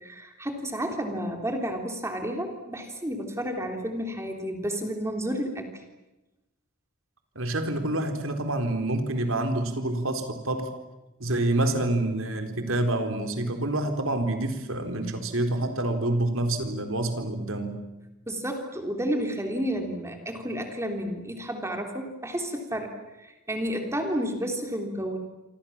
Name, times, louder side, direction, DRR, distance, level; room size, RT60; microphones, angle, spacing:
voice 1, 0.0-5.7 18.3-22.9 23.2-25.2, equal, 15° right, 4 dB, 3.3 m, -31 dB
voice 2, 7.4-10.7 11.2-17.8, right 1 dB, 70° right, 6 dB, 4.1 m, -27 dB
27.5 x 26.5 x 7.4 m, 1.0 s
head